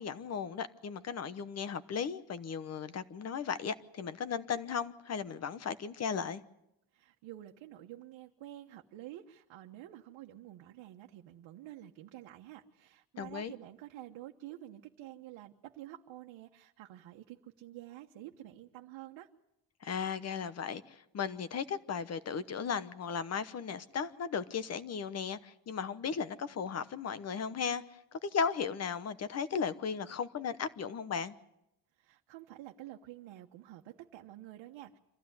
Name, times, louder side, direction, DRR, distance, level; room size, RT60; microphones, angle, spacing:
voice 1, 0.0-6.4 13.2-13.5 19.8-27.8 28.1-31.4, left 6 dB, 35° left, 14 dB, 1.0 m, -36 dB
voice 2, 6.9-19.3 32.0-35.0, right 14 dB, 75° right, 1 dB, 1.4 m, -49 dB
26.0 x 15.0 x 9.7 m, 0.86 s
cardioid pair, 165°, 45 cm